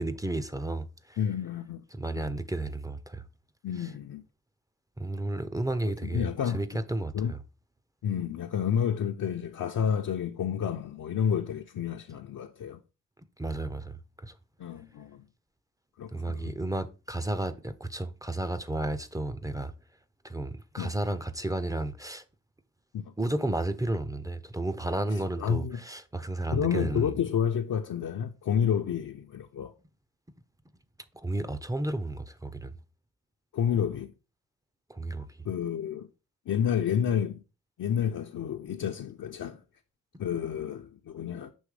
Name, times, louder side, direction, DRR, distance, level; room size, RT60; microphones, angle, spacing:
voice 1, 0.0-1.2 1.9-3.2 3.8-3.9 5.0-6.3 6.5-7.4 13.4-14.3 16.1-19.7 20.2-22.2 23.2-27.1 31.1-32.7 34.9-35.3, right 2 dB, 10° right, 0.5 m, -32 dB
voice 2, 1.2-1.8 3.6-4.2 6.0-6.6 7.1-7.3 8.0-12.8 14.6-15.3 16.0-16.5 20.8-20.9 22.9-23.1 25.1-25.8 26.5-29.7 33.5-34.1 35.4-36.1 36.5-37.4 37.8-39.6 40.2-41.5, left 8 dB, 60° left, 0.6 m, -30 dB
6.4 x 3.1 x 4.8 m
cardioid pair, 65°, 36 cm